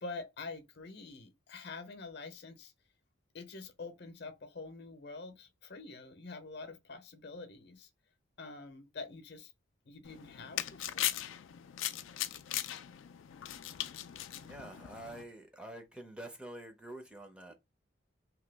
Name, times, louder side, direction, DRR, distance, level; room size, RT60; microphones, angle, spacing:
voice 1, 0.0-2.7 3.3-7.9 8.4-9.5 9.8-11.3 14.4-14.7, left 3 dB, 60° left, 0.7 m, -46 dB
sound 1, 10.1-15.2, left 12 dB, 85° left, 0.3 m, -39 dB
voice 2, 14.4-17.5, right 1 dB, 5° right, 0.5 m, -47 dB
2.9 x 2.2 x 3.3 m
head